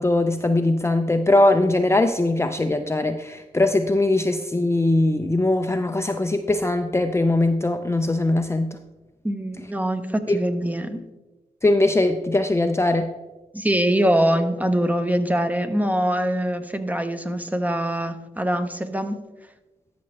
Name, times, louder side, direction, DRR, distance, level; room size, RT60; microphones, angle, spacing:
voice 1, 0.0-8.8 10.3-10.4 11.6-13.1, left 2 dB, 15° left, 6 dB, 0.5 m, -21 dB
voice 2, 9.2-11.0 13.5-19.2, right 1 dB, 10° right, 8 dB, 0.8 m, -23 dB
12.5 x 6.0 x 3.2 m, 1.1 s
cardioid pair, 55°, 16 cm